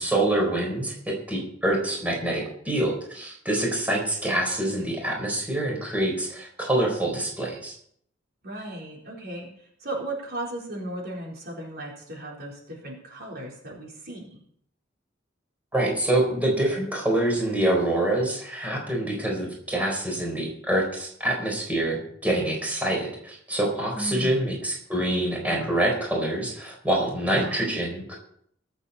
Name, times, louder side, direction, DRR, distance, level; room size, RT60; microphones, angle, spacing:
voice 1, 0.0-7.7 15.7-28.1, right 1 dB, 10° right, -1 dB, 4.3 m, -26 dB
voice 2, 8.4-14.4 23.9-24.6 27.3-27.7, right 1 dB, 55° right, -2 dB, 4.0 m, -36 dB
22.5 x 7.9 x 4.2 m, 0.64 s
head